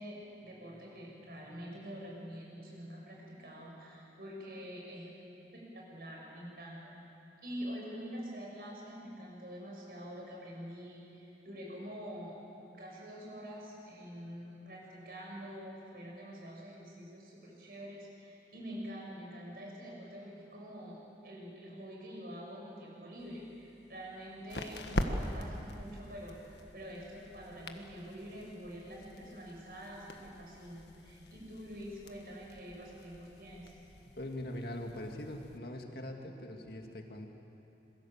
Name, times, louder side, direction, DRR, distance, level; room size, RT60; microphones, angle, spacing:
voice 1, 0.0-5.1 5.5-6.8 7.4-12.4 12.7-33.8, equal, 55° right, -2 dB, 7.0 m, -46 dB
sound 1, 23.2-35.6, left 1 dB, 75° left, 1.6 m, -43 dB
voice 2, 34.2-37.3, left 1 dB, 60° left, 2 dB, 2.3 m, -42 dB
26.5 x 22.5 x 7.4 m, 2.9 s
head